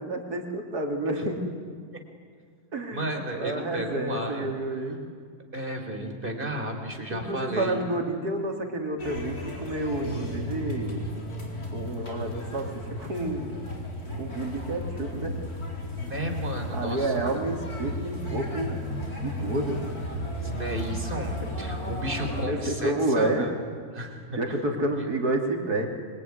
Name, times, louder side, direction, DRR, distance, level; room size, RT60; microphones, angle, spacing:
voice 1, 0.0-1.4 2.7-5.0 7.1-11.1 11.7-13.5 14.2-15.4 16.7-18.8 19.1-19.8 21.3-21.4 22.2-23.5 24.4-25.9, right 2 dB, 90° right, 3 dB, 3.7 m, -29 dB
voice 2, 2.9-4.5 5.5-7.8 16.0-17.4 20.4-23.5 23.9-24.6 24.9-25.1, right 1 dB, 35° right, 4 dB, 4.0 m, -33 dB
sound 1, 9.0-22.5, left 1 dB, 75° left, 4.8 m, -34 dB
26.0 x 23.5 x 9.7 m, 2.1 s
omnidirectional pair, 1.6 m